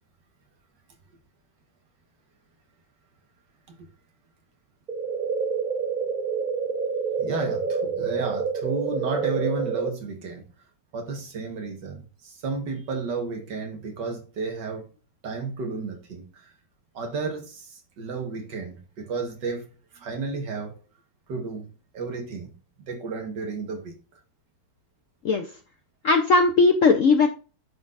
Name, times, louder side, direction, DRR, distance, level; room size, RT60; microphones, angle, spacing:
sound 1, 4.9-9.9, right 5 dB, 85° right, 0.4 m, -28 dB
voice 1, 7.2-10.5 10.9-14.9 15.2-16.5 16.9-19.7 19.9-20.7 21.3-22.5 22.8-24.0, right 4 dB, 65° right, 2.0 m, -32 dB
voice 2, 26.0-27.3, left 4 dB, 60° left, 0.9 m, -18 dB
11.0 x 4.0 x 2.5 m
omnidirectional pair, 2.1 m